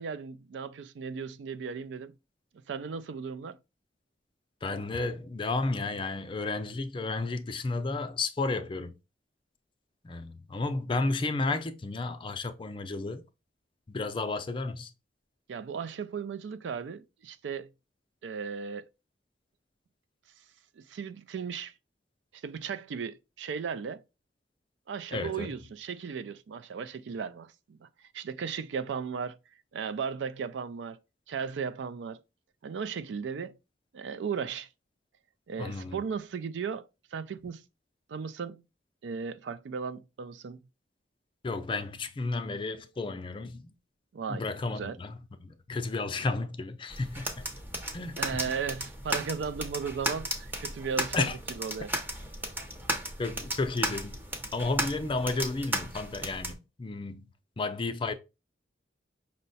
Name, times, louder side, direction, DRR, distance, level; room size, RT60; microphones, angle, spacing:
voice 1, 0.0-2.1 2.7-3.6 15.5-17.7 18.2-18.9 20.8-21.7 22.3-24.0 24.9-29.4 29.7-31.0 31.3-32.2 32.6-33.6 33.9-34.7 35.5-37.7 38.1-38.6 39.0-40.6 44.1-45.0 48.2-51.9, right 6 dB, 80° right, 0.4 m, -36 dB
voice 2, 4.6-9.0 10.0-13.2 13.9-14.9 25.1-25.5 35.6-36.0 41.4-43.6 44.3-47.5 47.9-48.4 51.1-51.4 53.2-54.2 54.5-57.3 57.6-58.1, left 3 dB, 30° left, 0.4 m, -32 dB
sound 1, 46.9-56.5, right 1 dB, 10° right, 0.7 m, -35 dB
5.4 x 2.1 x 4.0 m
head